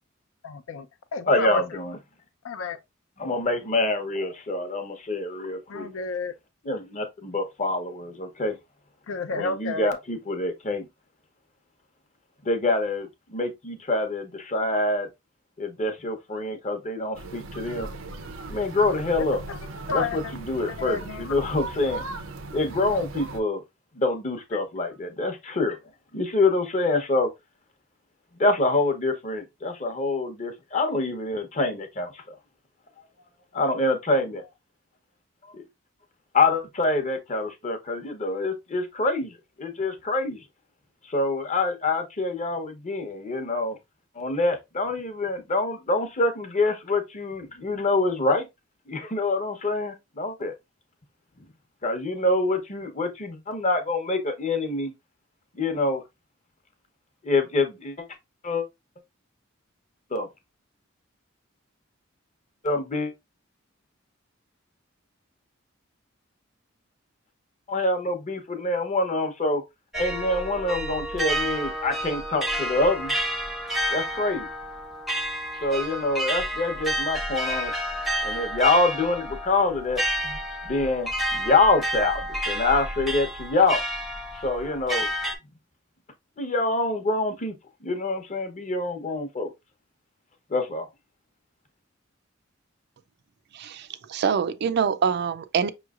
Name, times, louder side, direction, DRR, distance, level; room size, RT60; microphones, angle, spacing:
voice 1, 0.4-0.9 1.1-1.6 2.4-2.8 5.7-6.3 9.1-9.9 19.5-19.6 19.9-20.2 20.7-21.3 24.5-24.6, left 4 dB, 75° left, 0.5 m, -31 dB
voice 2, 1.3-2.0 3.2-5.9 6.6-8.5 9.3-10.9 12.4-15.1 15.6-17.9 18.5-19.4 19.9-22.0 22.5-23.6 24.0-25.8 26.1-27.3 28.4-32.3 33.5-34.5 35.5-35.6 36.3-40.4 41.1-43.8 44.2-48.5 48.9-50.5 51.8-54.9 55.5-56.0 57.2-58.1 58.4-58.6 60.1-60.3 62.6-63.1 67.7-69.6 69.9-73.1 73.9-74.5 75.5-77.7 78.2-80.4 80.6-83.8 84.3-85.1 86.4-87.5 87.8-89.5 90.5-90.9, left 2 dB, 35° left, 0.8 m, -26 dB
sound 1, 17.1-23.4, right 3 dB, 90° right, 0.7 m, -38 dB
sound 2, 69.9-85.3, equal, ahead, 0.6 m, -30 dB
voice 3, 93.5-95.7, right 6 dB, 55° right, 0.3 m, -25 dB
5.4 x 3.1 x 2.4 m
head